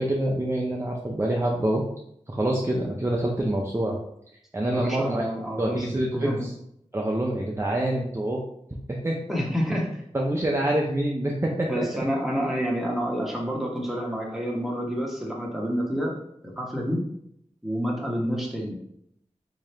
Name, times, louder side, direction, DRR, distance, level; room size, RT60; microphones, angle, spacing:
voice 1, 0.0-1.8 2.3-4.0 4.5-5.2 5.6-6.5 6.9-8.4 9.0-9.2 10.1-11.9, right 1 dB, 20° right, -2 dB, 0.5 m, -26 dB
voice 2, 4.7-6.5 9.3-9.9 11.7-16.1 16.4-17.0 17.6-18.8, equal, ahead, -2 dB, 1.0 m, -28 dB
3.7 x 2.7 x 3.3 m, 0.74 s
wide cardioid pair, 70°, 12 cm